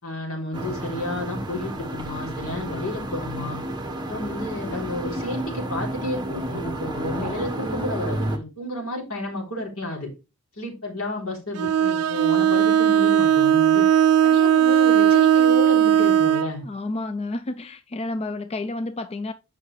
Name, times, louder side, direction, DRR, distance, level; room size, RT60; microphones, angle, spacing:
voice 1, 0.0-3.6 4.1-10.1 10.6-13.9 14.2-16.6, left 2 dB, 70° left, 3.5 m, -31 dB
sound 1, 0.5-8.4, right 1 dB, 20° right, 1.3 m, -31 dB
Bowed string instrument, 11.6-16.5, right 9 dB, 85° right, 0.4 m, -18 dB
voice 2, 16.6-19.3, left 2 dB, 30° left, 0.4 m, -30 dB
8.8 x 5.6 x 3.3 m
head